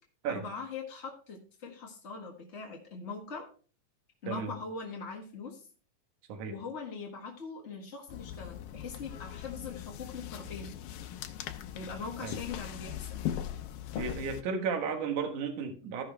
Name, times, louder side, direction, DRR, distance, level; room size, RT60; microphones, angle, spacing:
voice 1, 0.3-3.5 4.2-5.7 6.5-10.7 11.7-13.2, left 4 dB, 45° left, 0 dB, 0.8 m, -41 dB
sound 1, 8.1-14.4, left 10 dB, 85° left, 2.4 m, -40 dB
voice 2, 14.0-16.0, right 6 dB, 65° right, 4 dB, 2.8 m, -33 dB
15.5 x 5.7 x 3.3 m, 0.40 s
omnidirectional pair, 4.0 m